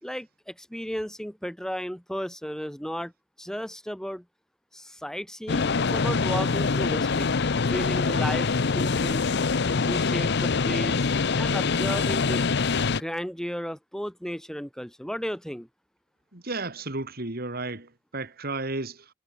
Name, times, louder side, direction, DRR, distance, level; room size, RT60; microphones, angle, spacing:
voice 1, 0.0-3.1 3.4-4.2 4.7-7.3 7.7-9.3 9.9-11.1 11.4-12.4 12.9-15.7, equal, 5° left, 2.8 m, -34 dB
sound 1, 5.5-13.0, left 4 dB, 60° left, 0.7 m, -24 dB
voice 2, 16.3-19.1, right 2 dB, 50° right, 2.8 m, -33 dB
head